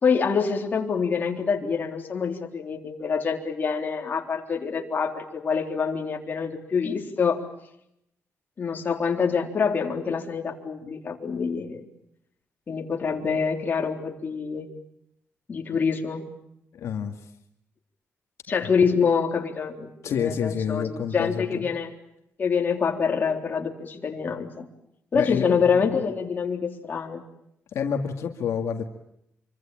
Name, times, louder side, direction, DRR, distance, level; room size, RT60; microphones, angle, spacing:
voice 1, 0.0-7.4 8.6-11.8 12.7-14.7 15.5-16.3 18.5-20.9 21.1-21.9 22.4-24.7 25.1-27.2, left 6 dB, 35° left, 2 dB, 3.7 m, -26 dB
voice 2, 16.7-17.3 20.0-21.7 25.1-25.8 27.7-28.8, left 7 dB, 75° left, 4 dB, 2.2 m, -29 dB
27.0 x 24.5 x 8.9 m, 0.78 s
wide cardioid pair, 150°, 5 cm